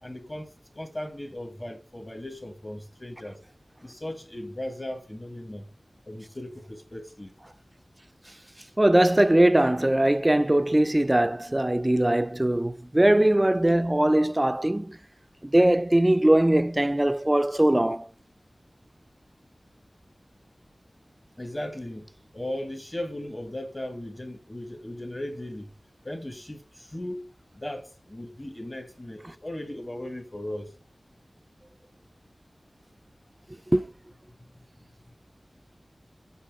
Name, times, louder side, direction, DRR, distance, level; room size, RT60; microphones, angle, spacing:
voice 1, 0.0-3.4 3.8-5.7 6.1-7.3 21.4-22.1 22.3-25.7 26.0-27.3 27.5-30.7, left 1 dB, 30° left, 1.2 m, -37 dB
voice 2, 8.8-15.0 15.4-18.1 33.7-33.9, right 1 dB, 20° right, 0.3 m, -21 dB
5.6 x 4.9 x 4.5 m
wide cardioid pair, 60°, 0 cm